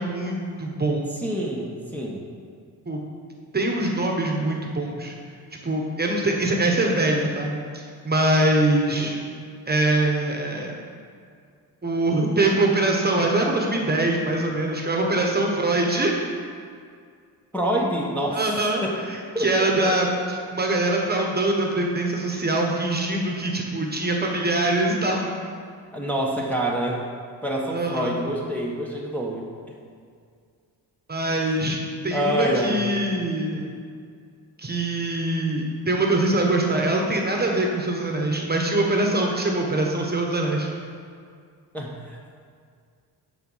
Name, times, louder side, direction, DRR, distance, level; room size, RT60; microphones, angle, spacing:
voice 1, 0.0-1.1 2.9-3.0 3.5-5.1 5.6-9.2 9.7-10.7 11.8-16.2 18.3-18.8 19.1-25.3 27.7-28.1 31.1-31.8 32.0-33.7 34.6-40.7, right 2 dB, 25° right, 1 dB, 1.2 m, -23 dB
voice 2, 1.2-2.3 17.5-18.4 18.8-19.0 19.3-20.0 25.9-27.0 27.4-29.5 31.4-31.6 32.1-33.0 41.7-42.2, right 1 dB, 5° left, -3 dB, 1.1 m, -27 dB
9.0 x 4.2 x 5.6 m, 2.2 s
cardioid pair, 80°, 39 cm